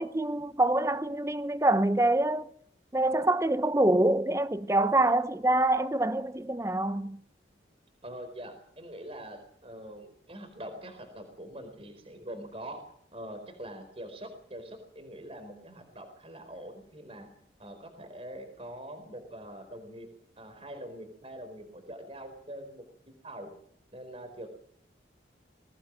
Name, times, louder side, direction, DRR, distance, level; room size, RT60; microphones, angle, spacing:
voice 1, 0.0-2.5 2.9-7.2, right 1 dB, 15° right, 0.8 m, -25 dB
voice 2, 8.0-12.8 13.1-17.3 17.6-20.1 20.4-23.5 23.9-24.5, right 1 dB, 30° right, 4.4 m, -44 dB
21.5 x 18.0 x 7.6 m
head